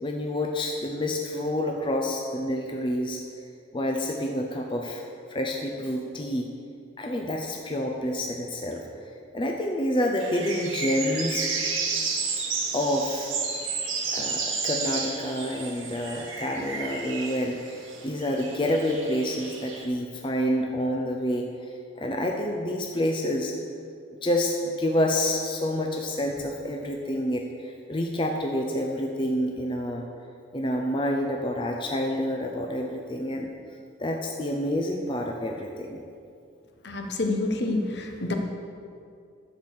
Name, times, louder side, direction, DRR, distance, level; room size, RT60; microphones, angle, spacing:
voice 1, 0.0-3.2 3.7-5.0 5.3-6.5 7.0-8.8 9.3-11.5 12.7-13.3 14.1-21.5 22.0-23.5 24.2-30.0 30.5-33.5 34.0-36.0, left 1 dB, 25° left, 1 dB, 0.6 m, -28 dB
sound 1, 10.2-19.8, right 4 dB, 90° right, 1.6 m, -32 dB
voice 2, 36.8-38.3, left 2 dB, 55° left, 3 dB, 1.0 m, -28 dB
12.0 x 4.8 x 7.2 m, 2.4 s
head